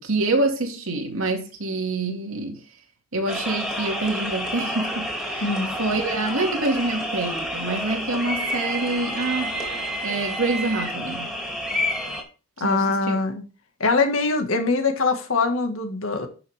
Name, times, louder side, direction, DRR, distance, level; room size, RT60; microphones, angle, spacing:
voice 1, 0.0-2.6 3.1-5.5 5.8-9.6 10.0-11.3 12.6-13.2, right 2 dB, 90° right, 2.2 m, -26 dB
sound 1, 3.3-12.2, equal, ahead, 2.6 m, -29 dB
voice 2, 5.4-5.7 12.6-13.4 13.8-16.3, left 3 dB, 80° left, 1.7 m, -23 dB
12.0 x 6.0 x 3.5 m
head